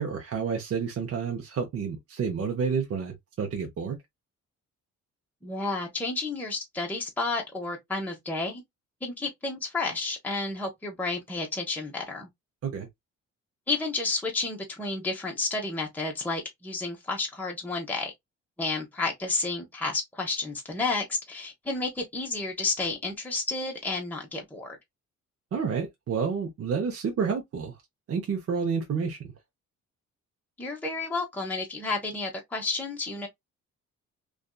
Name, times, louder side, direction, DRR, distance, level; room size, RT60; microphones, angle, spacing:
voice 1, 0.0-4.0 12.6-12.9 25.5-27.7 28.1-29.2, right 6 dB, 50° right, 0.7 m, -29 dB
voice 2, 5.4-8.6 9.0-12.3 13.7-18.1 18.6-24.8 30.6-33.3, left 3 dB, 5° left, 0.8 m, -31 dB
2.6 x 2.3 x 2.2 m
cardioid pair, 90°, 30 cm